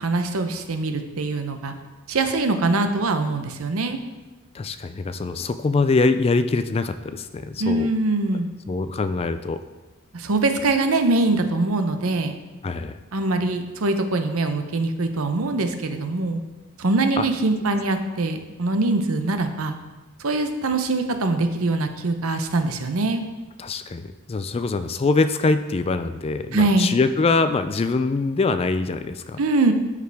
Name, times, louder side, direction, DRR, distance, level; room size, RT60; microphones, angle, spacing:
voice 1, 0.0-1.7 2.1-4.0 7.6-8.5 10.1-12.3 13.1-16.4 16.8-19.7 20.2-23.2 26.5-26.9 29.4-29.7, right 2 dB, 70° right, 7 dB, 0.7 m, -23 dB
voice 2, 4.5-7.9 8.7-9.6 12.6-13.0 17.2-17.3 23.6-29.4, left 3 dB, 25° left, 11 dB, 0.3 m, -23 dB
12.5 x 4.9 x 3.4 m, 1.1 s
head